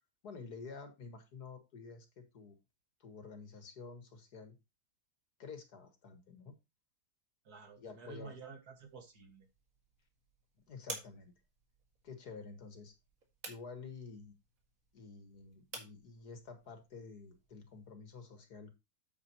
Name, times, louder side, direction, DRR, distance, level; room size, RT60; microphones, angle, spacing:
voice 1, 0.2-2.6 3.0-4.6 5.4-6.6 7.8-8.3 10.7-11.3 12.0-12.9 13.5-14.3 14.9-18.7, left 4 dB, 85° left, 6 dB, 2.4 m, -50 dB
voice 2, 7.5-9.5, right 5 dB, 75° right, 5 dB, 2.4 m, -51 dB
sound 1, 8.8-17.9, right 3 dB, 60° right, 2.6 m, -53 dB
8.6 x 8.6 x 3.0 m, 0.24 s
omnidirectional pair, 1.6 m